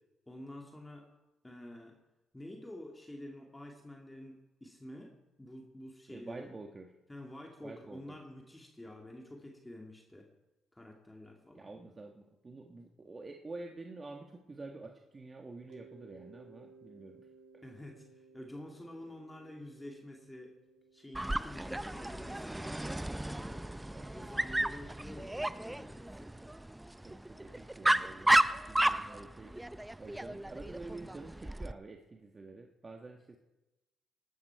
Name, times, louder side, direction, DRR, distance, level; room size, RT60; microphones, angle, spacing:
voice 1, 0.3-1.1 1.4-2.0 2.3-5.1 5.4-6.5 7.1-10.3 10.7-11.7 17.6-20.5 20.9-26.3, left 1 dB, 10° left, 0 dB, 2.2 m, -49 dB
voice 2, 6.1-6.9 7.6-8.2 11.5-17.3 23.9-24.2 27.0-29.6 30.0-33.4, right 3 dB, 30° right, 3 dB, 1.3 m, -48 dB
Mallet percussion, 15.7-24.3, right 4 dB, 65° right, 1.8 m, -60 dB
Dog, 21.1-31.7, right 1 dB, 10° right, 0.5 m, -33 dB
18.0 x 12.5 x 4.6 m, 1.0 s
cardioid pair, 90°, 0 cm